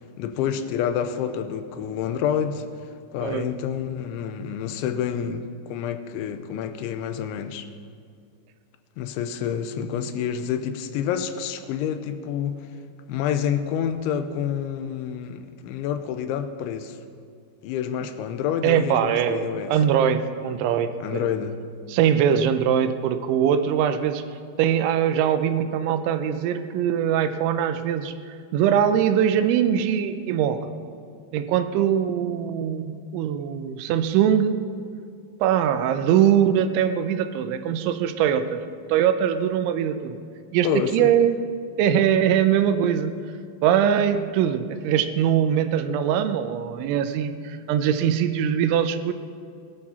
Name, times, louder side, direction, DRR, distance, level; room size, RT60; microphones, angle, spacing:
voice 1, 0.2-2.7 3.1-7.7 9.0-12.7 13.1-17.0 17.6-19.7 21.0-21.6 40.6-41.1, left 8 dB, 85° left, 9 dB, 3.1 m, -28 dB
voice 2, 18.6-21.3 21.9-24.2 24.6-30.6 31.3-34.6 35.4-38.6 38.9-40.2 40.5-41.4 41.8-43.1 43.6-49.1, right 9 dB, 85° right, 9 dB, 3.1 m, -22 dB
20.0 x 12.0 x 4.2 m, 2.3 s
omnidirectional pair, 5.3 m